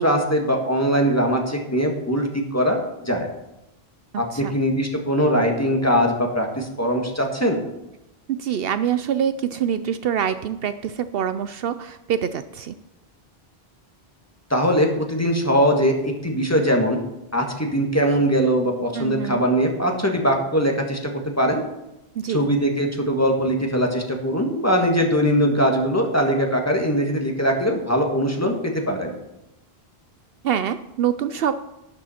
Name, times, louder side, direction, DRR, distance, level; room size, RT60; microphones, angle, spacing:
voice 1, 0.0-3.3 4.2-4.3 4.5-7.6 14.5-17.0 17.3-21.1 21.4-21.6 22.3-28.5 28.9-29.1, equal, 15° left, 1 dB, 1.6 m, -21 dB
voice 2, 8.4-12.7 18.9-19.5 22.2-22.5 30.4-31.6, right 9 dB, 70° right, 12 dB, 0.7 m, -25 dB
12.0 x 9.9 x 4.3 m, 0.91 s
omnidirectional pair, 1.1 m